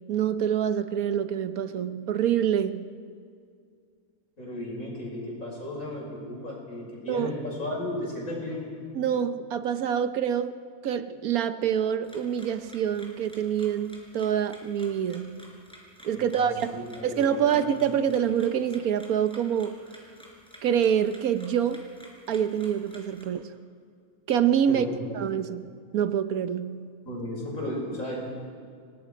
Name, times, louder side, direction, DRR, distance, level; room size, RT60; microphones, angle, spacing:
voice 1, 0.0-2.9 7.1-7.3 8.9-15.4 16.0-19.8 20.6-21.9 22.3-23.6 24.3-24.9 25.1-26.9, right 9 dB, 80° right, 11 dB, 1.3 m, -26 dB
voice 2, 4.4-8.6 16.1-17.6 24.7-25.2 27.0-28.2, left 1 dB, 65° left, -3 dB, 6.5 m, -35 dB
sound 1, 12.0-23.2, equal, 5° left, 4.3 m, -51 dB
29.5 x 18.5 x 5.2 m, 2.3 s
omnidirectional pair, 1.5 m